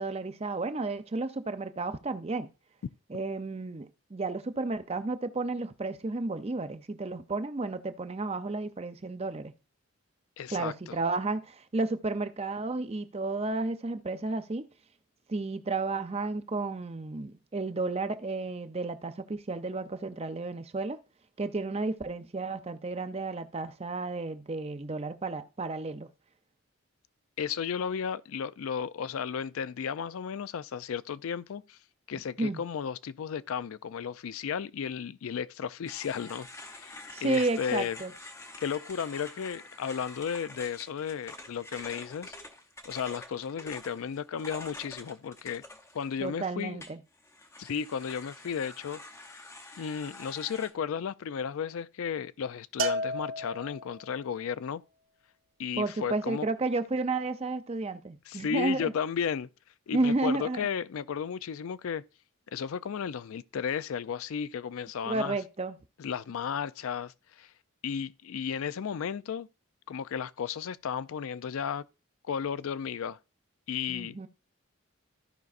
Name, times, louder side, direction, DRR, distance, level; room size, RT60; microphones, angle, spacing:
voice 1, 0.0-2.5 3.1-9.5 10.5-14.7 15.3-21.0 21.4-26.1 32.4-32.6 37.1-38.1 46.2-47.0 55.8-58.9 59.9-60.7 65.0-65.8 73.9-74.3, right 3 dB, 30° right, 0.5 m, -32 dB
voice 2, 10.4-11.0 27.4-31.8 32.1-38.0 38.6-42.4 42.8-45.6 45.9-46.8 47.6-49.0 49.8-54.8 55.6-56.5 58.3-59.5 59.9-62.0 62.5-65.4 66.0-67.5 67.8-69.5 69.9-71.8 72.2-73.2 73.7-74.2, left 7 dB, 70° left, 0.4 m, -34 dB
sound 1, 35.9-46.3 46.8-50.7, left 2 dB, 15° left, 0.7 m, -47 dB
Bell, 52.8-54.2, equal, 65° right, 0.7 m, -32 dB
15.0 x 5.3 x 2.5 m
head